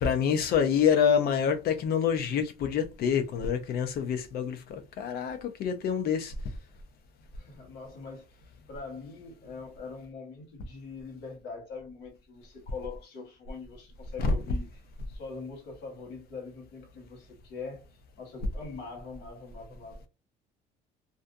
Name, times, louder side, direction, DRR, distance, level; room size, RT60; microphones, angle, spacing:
voice 1, 0.0-6.3 14.2-14.6, left 7 dB, 65° left, 0.6 m, -27 dB
voice 2, 7.4-8.4 8.7-14.6 15.1-17.8 18.2-20.1, left 4 dB, 85° left, 1.3 m, -43 dB
2.5 x 2.3 x 2.5 m
cardioid pair, 110°, 17 cm